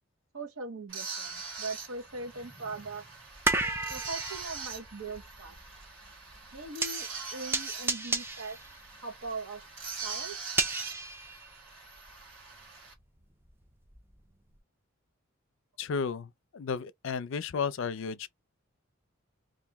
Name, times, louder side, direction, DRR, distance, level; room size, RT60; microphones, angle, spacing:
voice 1, 0.3-3.0 3.9-5.6 6.5-8.6 9.0-9.6 10.0-10.4, right 3 dB, 85° right, 0.9 m, -40 dB
sound 1, 0.9-12.9, right 4 dB, 60° right, 1.7 m, -43 dB
sound 2, 1.4-1.5 2.1-12.2 12.5-14.2 14.6-14.7, right 2 dB, 10° right, 0.4 m, -35 dB
voice 2, 15.8-18.3, left 5 dB, 60° left, 0.4 m, -33 dB
2.9 x 2.5 x 3.4 m
head